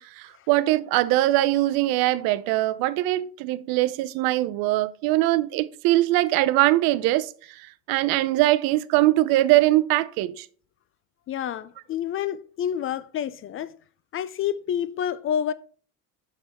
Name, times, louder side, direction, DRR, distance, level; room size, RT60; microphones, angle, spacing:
voice 1, 0.0-7.3 7.9-10.5, right 16 dB, 60° right, 0.6 m, -22 dB
voice 2, 11.3-13.7 14.1-15.5, left 9 dB, 35° left, 0.4 m, -28 dB
6.2 x 5.3 x 4.1 m
hypercardioid pair, 75°, 41 cm